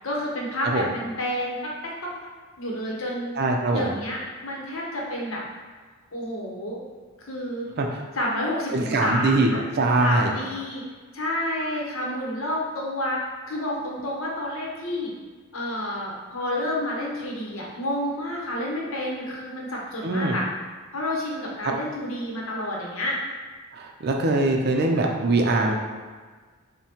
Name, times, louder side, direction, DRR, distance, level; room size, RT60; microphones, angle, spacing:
voice 1, 0.0-2.1 2.6-3.4 3.7-5.4 6.1-6.8 7.2-7.7 8.1-9.6 10.0-10.8 11.1-15.1 15.5-20.4 20.9-23.2, left 1 dB, 70° left, -3 dB, 0.9 m, -29 dB
voice 2, 3.4-3.9 7.8-7.9 8.7-10.3 20.0-20.3 21.6-21.7 23.7-25.7, right 2 dB, 50° right, 2 dB, 0.5 m, -22 dB
5.5 x 2.2 x 3.0 m, 1.4 s
head